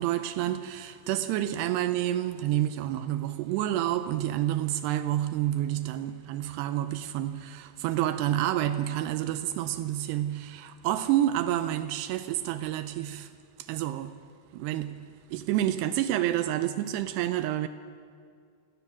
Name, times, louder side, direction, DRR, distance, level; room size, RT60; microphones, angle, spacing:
voice 1, 0.0-13.3 13.6-14.2 14.5-17.7, right 13 dB, 85° right, 2.8 m, -29 dB
28.0 x 16.0 x 7.2 m
omnidirectional pair, 4.8 m